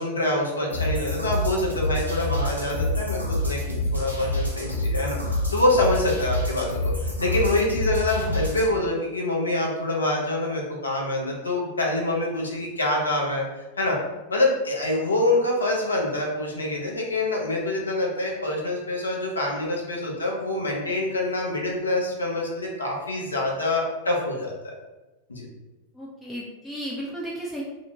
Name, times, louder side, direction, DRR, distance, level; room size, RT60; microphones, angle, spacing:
voice 1, 0.0-3.6 3.9-13.4 13.8-14.0 14.3-24.7 25.3-25.5, left 2 dB, 75° left, -1 dB, 0.6 m, -25 dB
sound 1, 0.7-8.7, left 1 dB, 85° right, 0.6 m, -27 dB
voice 2, 25.9-27.6, equal, 5° left, -5 dB, 0.4 m, -34 dB
2.6 x 2.0 x 2.8 m, 1.1 s
figure-of-eight pair, 90°, 0 cm